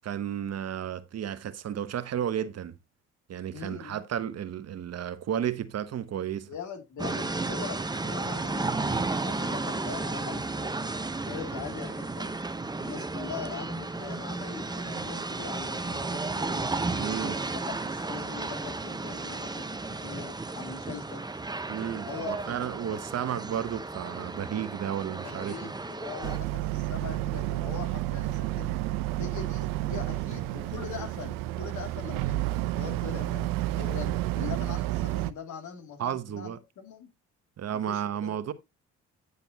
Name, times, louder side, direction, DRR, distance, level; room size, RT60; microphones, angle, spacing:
voice 1, 0.0-2.8 3.3-6.5 17.0-17.4 21.7-25.7 36.0-36.6 37.6-38.5, right 9 dB, 50° right, 1.0 m, -33 dB
voice 2, 3.5-4.1 6.5-10.7 11.3-12.4 12.8-16.7 17.2-21.2 22.1-22.6 25.2-33.5 33.8-37.1 37.7-38.3, left 7 dB, 65° left, 2.8 m, -42 dB
sound 1, 7.0-26.4, right 3 dB, 15° right, 0.9 m, -33 dB
Boat Water vehicle, 26.2-35.3, right 16 dB, 85° right, 0.7 m, -30 dB
9.6 x 6.8 x 2.9 m
supercardioid pair, 70°, 32 cm